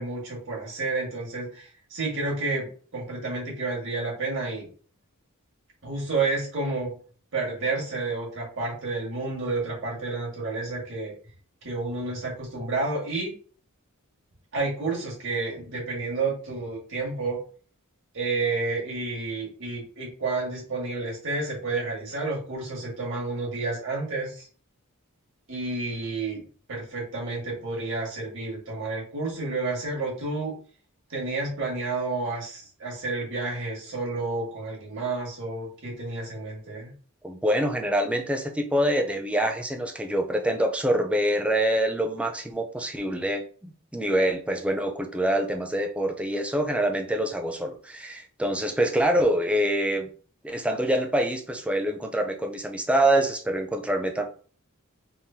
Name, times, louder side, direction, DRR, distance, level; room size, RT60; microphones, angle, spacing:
voice 1, 0.0-4.7 5.8-6.9 7.3-11.1 11.6-13.3 14.5-17.4 18.1-24.5 25.5-26.4 26.7-30.5 31.1-36.9, right 3 dB, 60° right, -3 dB, 1.9 m, -30 dB
voice 2, 37.2-50.1 50.4-54.2, right 1 dB, 5° right, 3 dB, 0.5 m, -25 dB
3.7 x 3.0 x 2.8 m, 0.42 s
head